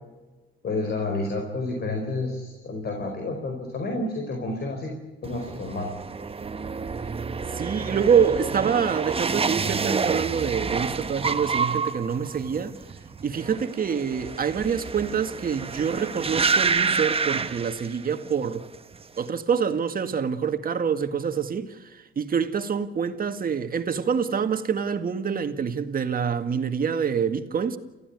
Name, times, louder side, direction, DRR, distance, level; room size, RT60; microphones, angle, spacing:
voice 1, 0.6-4.9 5.2-5.9, left 2 dB, 55° left, 4.8 m, -30 dB
sound 1, 5.2-18.3 18.6-19.2, right 5 dB, 30° right, 1.2 m, -28 dB
voice 2, 7.5-12.8 13.2-18.6 19.2-27.8, right 7 dB, 45° right, 2.0 m, -26 dB
29.5 x 15.0 x 9.5 m
cardioid pair, 90°, 20 cm